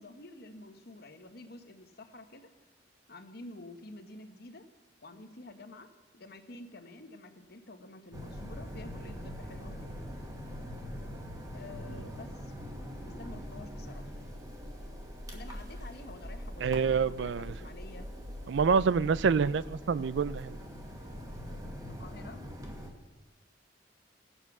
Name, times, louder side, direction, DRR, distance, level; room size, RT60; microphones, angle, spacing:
voice 1, 0.0-2.5 3.1-4.6 5.0-5.9 6.1-9.9 11.5-12.5 13.0-14.1 15.3-18.1 21.9-22.4, left 2 dB, 55° left, 1.1 m, -49 dB
sound 1, 8.1-22.9, equal, 20° right, 1.6 m, -42 dB
voice 2, 16.6-17.6 18.5-20.6, right 5 dB, 65° right, 0.4 m, -27 dB
17.0 x 8.1 x 6.0 m
head